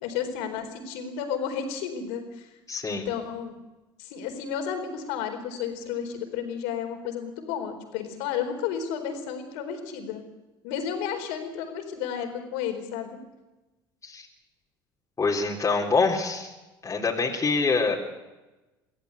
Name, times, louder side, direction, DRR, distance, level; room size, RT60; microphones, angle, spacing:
voice 1, 0.0-2.5 3.1-3.5 4.0-10.2 10.6-13.2, left 8 dB, 70° left, 6 dB, 4.3 m, -32 dB
voice 2, 2.7-3.0 14.0-14.3 15.2-16.5 16.8-18.0, left 4 dB, 25° left, -3 dB, 3.8 m, -25 dB
25.0 x 15.5 x 8.2 m, 1.1 s
hypercardioid pair, 70°, 11 cm